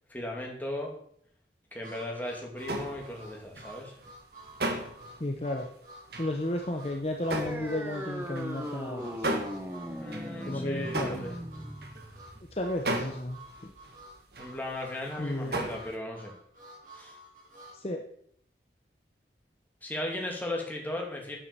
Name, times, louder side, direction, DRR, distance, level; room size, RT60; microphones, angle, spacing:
voice 1, 0.1-0.9 1.7-3.9 10.0-11.3 14.4-16.3 16.9-17.2 19.8-21.4, left 1 dB, 10° left, 0 dB, 2.5 m, -36 dB
Harmonica, 1.8-17.8, right 1 dB, 45° right, 6.1 m, -51 dB
sound 1, 2.6-12.4 12.8-14.8 15.0-16.0, right 1 dB, 60° right, 2.0 m, -36 dB
voice 2, 5.2-5.7 6.2-9.3 10.5-11.2 12.5-13.7 15.2-15.6 17.7-18.1, left 1 dB, 35° left, 3 dB, 1.0 m, -33 dB
sound 2, 7.3-14.3, equal, 10° right, 1.2 m, -39 dB
10.0 x 8.6 x 6.9 m, 0.67 s
head